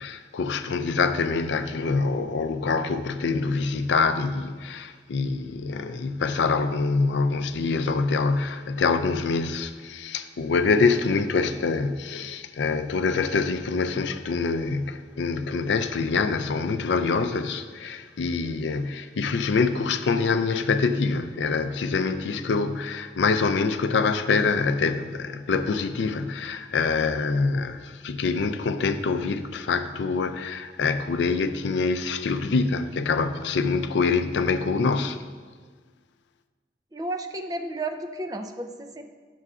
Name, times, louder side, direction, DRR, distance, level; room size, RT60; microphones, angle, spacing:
voice 1, 0.0-35.2, left 4 dB, 80° left, 0.4 m, -25 dB
voice 2, 36.9-39.0, right 2 dB, 20° right, 0.4 m, -32 dB
10.5 x 6.7 x 2.4 m
head